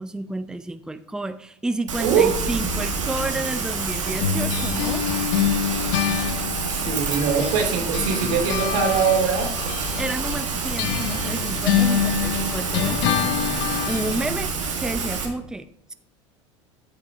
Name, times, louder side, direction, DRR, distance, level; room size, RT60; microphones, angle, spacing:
voice 1, 0.0-5.1 10.0-13.2 13.8-15.9, right 2 dB, 5° right, 10 dB, 0.6 m, -30 dB
Rain, 1.9-15.3, right 4 dB, 90° right, 1.7 m, -27 dB
voice 2, 2.0-2.3 6.7-9.5, right 6 dB, 65° right, 3 dB, 2.5 m, -22 dB
sound 1, 4.2-7.7 7.9-14.3, left 9 dB, 65° left, 1.1 m, -26 dB
13.5 x 5.6 x 3.5 m, 0.74 s
hypercardioid pair, 80°, 16 cm